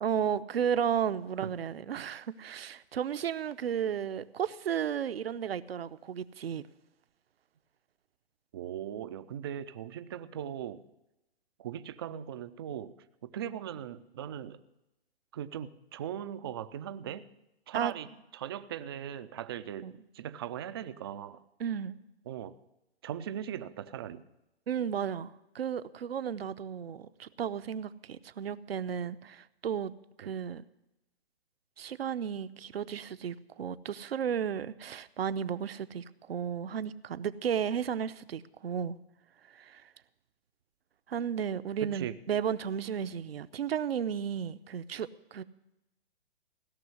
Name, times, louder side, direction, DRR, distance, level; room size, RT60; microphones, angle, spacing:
voice 1, 0.0-6.6 17.7-17.9 19.8-19.9 21.6-22.0 24.7-30.6 31.8-39.0 39.5-39.9 41.1-45.4, right 8 dB, 70° right, 14 dB, 0.8 m, -33 dB
voice 2, 8.5-10.8 11.6-13.0 13.2-14.6 15.3-17.3 17.7-18.1 18.3-21.4 22.3-22.6 23.0-24.2 30.2-30.3 41.8-42.2, right 10 dB, 25° right, 12 dB, 0.4 m, -39 dB
16.5 x 6.1 x 9.4 m, 0.91 s
hypercardioid pair, 140°, 32 cm